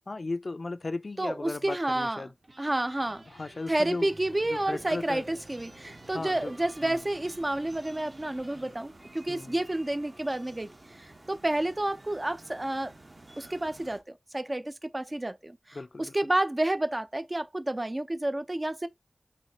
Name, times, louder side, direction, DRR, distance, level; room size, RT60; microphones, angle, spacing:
voice 1, 0.1-2.3 3.2-5.4 6.1-6.5 6.8-7.0 9.3-9.6 15.7-16.1, left 3 dB, 70° left, 0.4 m, -36 dB
voice 2, 1.2-2.2 2.6-3.2 3.7-10.7 11.0-12.9 13.4-18.9, right 1 dB, 35° right, 0.5 m, -30 dB
sound 1, 2.4-14.0, right 2 dB, 50° right, 1.1 m, -51 dB
sound 2, 2.4-8.8, right 2 dB, 80° right, 1.1 m, -55 dB
4.3 x 2.8 x 2.9 m
wide cardioid pair, 55°, 0 cm